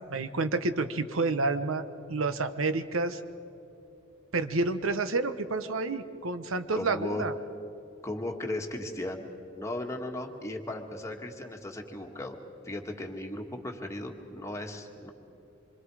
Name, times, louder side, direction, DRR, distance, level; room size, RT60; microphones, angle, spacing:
voice 1, 0.1-3.2 4.3-7.3, right 3 dB, 85° right, 11 dB, 1.0 m, -29 dB
voice 2, 6.7-7.2 8.0-9.2 9.5-12.4 12.6-15.1, left 1 dB, 15° left, 2 dB, 1.6 m, -36 dB
26.5 x 25.0 x 4.9 m, 2.8 s
head